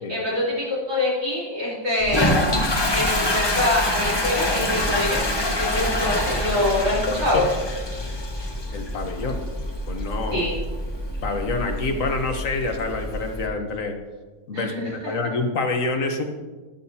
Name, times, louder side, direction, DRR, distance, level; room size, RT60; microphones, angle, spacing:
voice 1, 0.1-2.4 2.9-7.5 10.3-10.5 14.5-14.9, left 1 dB, 85° right, -7 dB, 4.3 m, -24 dB
Toilet flush, 2.0-13.4, left 1 dB, 20° left, 1.1 m, -26 dB
voice 2, 8.7-9.4 9.9-10.5 11.2-14.0 14.5-16.2, left 3 dB, 85° left, 5 dB, 1.6 m, -27 dB
12.5 x 11.5 x 2.9 m, 1.3 s
omnidirectional pair, 1.3 m